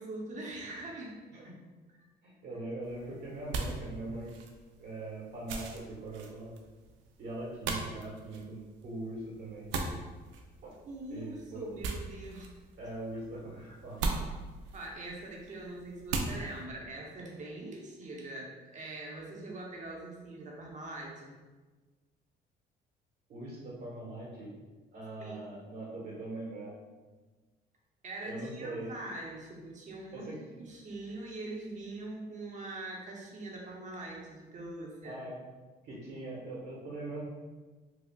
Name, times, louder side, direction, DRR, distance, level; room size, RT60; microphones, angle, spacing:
voice 1, 0.0-1.2 10.8-12.5 14.7-21.4 25.2-25.4 28.0-30.3 30.6-35.2, right 2 dB, 40° right, -2 dB, 0.9 m, -42 dB
voice 2, 1.3-1.6 2.2-4.4 4.8-6.5 7.2-9.7 10.6-10.7 11.1-11.6 12.8-14.0 23.3-24.5 24.9-26.7 28.2-28.9 30.1-30.4 35.0-35.3 35.8-37.2, right 2 dB, 60° right, -3 dB, 1.2 m, -41 dB
sound 1, 2.8-16.6, right 3 dB, 90° right, 0.4 m, -40 dB
4.8 x 2.3 x 2.3 m, 1.3 s
cardioid pair, 90°, 19 cm